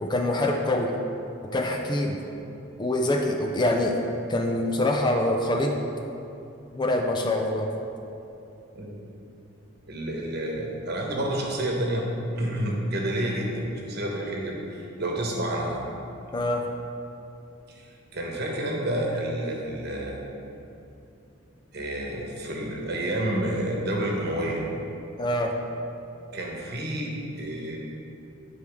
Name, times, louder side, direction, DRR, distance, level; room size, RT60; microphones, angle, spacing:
voice 1, 0.0-0.9 1.5-2.2 2.8-4.0 4.3-5.8 6.7-7.7 16.3-16.7 25.2-25.6, left 1 dB, 20° left, 2 dB, 0.4 m, -25 dB
voice 2, 9.9-12.1 12.4-15.9 17.7-20.2 21.7-24.7 26.3-27.8, right 1 dB, 55° right, -1 dB, 1.1 m, -29 dB
9.9 x 4.7 x 3.6 m, 2.7 s
head